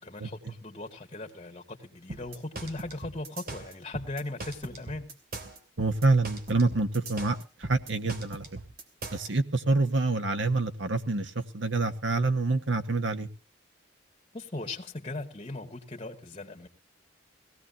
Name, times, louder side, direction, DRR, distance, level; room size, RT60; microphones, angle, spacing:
voice 1, 0.0-5.1 14.3-16.7, left 2 dB, 30° left, 3 dB, 2.2 m, -38 dB
sound 1, 2.1-9.3, right 2 dB, 50° right, 2.8 m, -40 dB
voice 2, 5.8-7.4 7.7-8.4 9.1-13.3, right 3 dB, 75° right, 8 dB, 1.5 m, -26 dB
20.5 x 17.0 x 2.8 m, 0.34 s
head